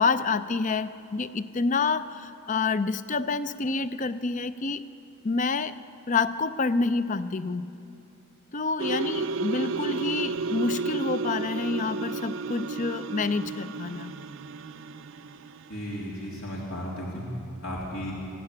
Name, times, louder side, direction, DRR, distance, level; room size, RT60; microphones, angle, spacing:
voice 1, 0.0-4.8 5.2-5.8 6.1-7.7 8.5-14.1, left 4 dB, 35° left, 14 dB, 0.5 m, -28 dB
sound 1, 8.8-15.9, right 3 dB, 60° right, 0.5 m, -32 dB
voice 2, 15.7-17.2 17.6-18.1, equal, 85° left, -4 dB, 3.3 m, -34 dB
21.5 x 15.0 x 9.7 m, 2.8 s
head